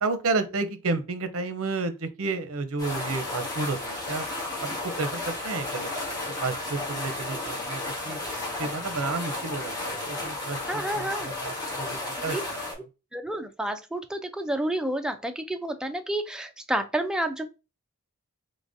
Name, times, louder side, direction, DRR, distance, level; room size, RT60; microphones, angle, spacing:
voice 1, 0.0-4.2 4.6-8.2 8.6-12.6, right 3 dB, 65° right, 0.6 m, -31 dB
sound 1, 2.8-12.7, left 2 dB, 20° left, 1.3 m, -33 dB
voice 2, 10.7-11.3 12.3-12.4 13.1-17.5, right 1 dB, 5° right, 0.3 m, -30 dB
3.8 x 3.2 x 2.5 m
head